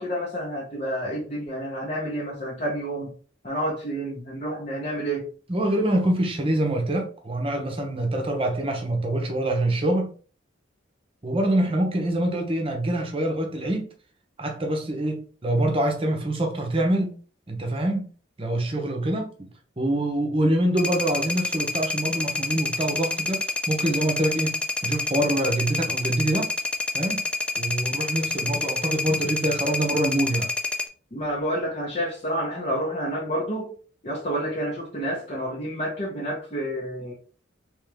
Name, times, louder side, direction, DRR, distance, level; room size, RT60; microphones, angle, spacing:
voice 1, 0.0-3.1 3.4-5.3 31.1-33.7 34.0-37.1, right 1 dB, 35° left, 0.9 m, -29 dB
voice 2, 5.5-10.1 11.2-13.9 14.4-17.2 17.5-18.1 18.4-19.5 19.8-26.5 26.9-27.3 27.6-30.5, right 1 dB, 30° right, 0.8 m, -25 dB
sound 1, 20.8-30.9, left 3 dB, 5° left, 0.3 m, -28 dB
3.6 x 3.1 x 3.4 m
head